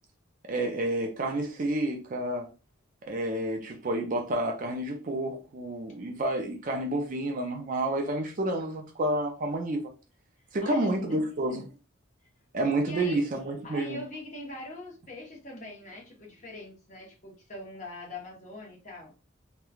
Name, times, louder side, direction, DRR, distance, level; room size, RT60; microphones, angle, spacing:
voice 1, 0.4-2.5 3.0-9.9 10.5-11.6 12.5-14.0, right 1 dB, 40° right, 0.4 m, -29 dB
voice 2, 10.6-11.7 12.8-13.2 13.6-19.1, left 1 dB, 35° left, 0.9 m, -42 dB
3.1 x 2.2 x 2.3 m
head